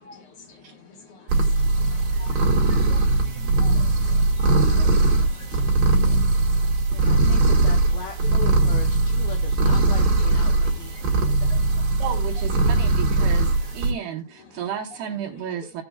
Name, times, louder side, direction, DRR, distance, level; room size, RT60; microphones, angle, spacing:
voice 1, 0.0-7.1 7.8-7.9 8.2-8.4 10.1-12.0 12.6-13.9 14.3-14.6 14.9-15.0 15.3-15.8, left 4 dB, 55° left, 1.5 m, -48 dB
sound 1, 1.3-13.9, right 2 dB, 45° right, 2.7 m, -20 dB
sound 2, 2.4-6.1, right 1 dB, 90° right, 3.2 m, -39 dB
sound 3, 3.6-13.7, right 2 dB, ahead, 4.1 m, -44 dB
voice 2, 6.9-11.0 11.4-11.5, left 6 dB, 80° left, 2.2 m, -39 dB
voice 3, 12.0-15.8, right 8 dB, 75° right, 2.7 m, -32 dB
18.0 x 7.0 x 2.2 m
omnidirectional pair, 5.4 m